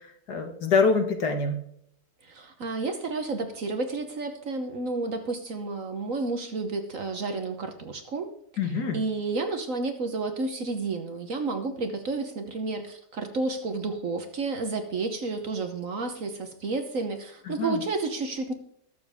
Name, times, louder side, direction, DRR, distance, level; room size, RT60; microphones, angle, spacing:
voice 1, 0.3-1.6 8.6-9.0 17.5-17.8, left 4 dB, 60° left, 5 dB, 1.9 m, -25 dB
voice 2, 2.2-8.3 8.6-18.5, right 3 dB, 50° right, 6 dB, 1.3 m, -31 dB
21.5 x 7.2 x 3.6 m, 0.70 s
omnidirectional pair, 2.0 m